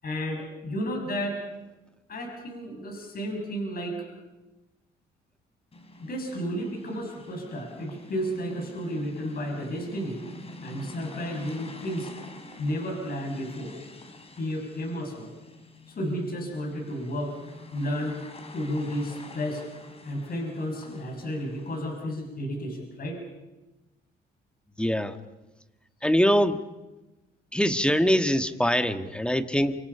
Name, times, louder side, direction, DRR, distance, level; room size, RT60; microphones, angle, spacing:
voice 1, 0.0-1.4 2.1-4.1 6.0-10.2 10.6-12.1 12.6-13.7 14.4-15.3 15.9-17.4 17.7-18.2 18.5-19.6 20.0-23.2, equal, 50° left, 2 dB, 6.9 m, -32 dB
sound 1, 5.7-22.2, left 1 dB, 30° left, 3.7 m, -47 dB
voice 2, 24.8-25.2 26.0-26.6 27.5-29.8, equal, 5° left, 9 dB, 1.6 m, -23 dB
28.5 x 25.0 x 5.7 m, 1.1 s
cardioid pair, 90°, 20 cm